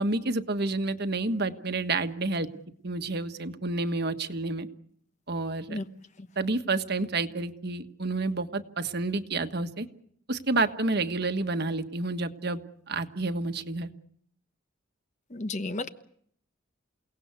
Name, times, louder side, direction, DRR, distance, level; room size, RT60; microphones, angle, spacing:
voice 1, 0.0-2.5 2.8-4.7 5.3-5.8 6.4-9.9 10.3-12.6 12.9-13.9, right 3 dB, 55° right, 8 dB, 1.4 m, -29 dB
voice 2, 15.3-15.9, left 2 dB, 35° left, 10 dB, 1.1 m, -32 dB
29.0 x 18.0 x 8.1 m, 0.65 s
head